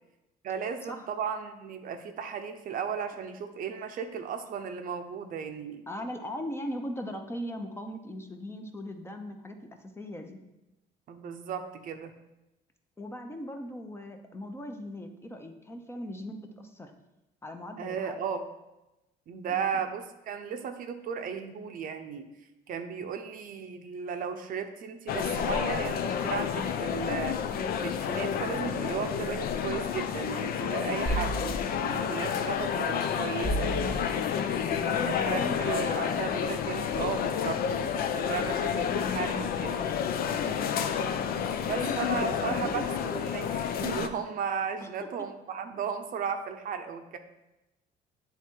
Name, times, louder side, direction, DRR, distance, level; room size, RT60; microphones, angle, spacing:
voice 1, 0.4-5.8 11.1-12.1 17.8-18.5 19.3-22.3 22.7-34.0 34.7-39.8 41.6-43.5 43.8-47.2, right 7 dB, 55° right, 7 dB, 0.6 m, -35 dB
voice 2, 5.9-10.4 13.0-16.9 17.4-18.2 19.5-19.8 34.3-35.8 40.4-40.8 41.7-42.2 42.4-43.0 44.8-45.1, equal, 15° left, 5 dB, 0.7 m, -39 dB
sound 1, 25.1-44.1, left 8 dB, 60° left, 0.5 m, -30 dB
sound 2, 31.1-32.4 32.9-35.0 35.6-35.7, right 1 dB, 35° left, 1.2 m, -34 dB
8.9 x 3.6 x 4.4 m, 0.97 s
cardioid pair, 110°, 17 cm